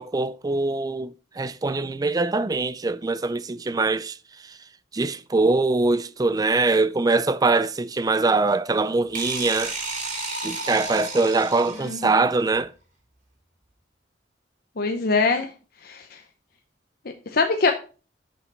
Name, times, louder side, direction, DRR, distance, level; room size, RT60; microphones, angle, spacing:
voice 1, 0.0-4.2 4.9-9.7 10.4-12.7, right 3 dB, 20° right, 0.4 m, -23 dB
sound 1, 9.1-12.1, right 3 dB, 45° right, 2.8 m, -32 dB
voice 2, 11.8-12.3 14.8-15.5 15.8-16.2 17.3-17.7, left 4 dB, 55° left, 0.8 m, -23 dB
6.9 x 5.4 x 5.1 m
head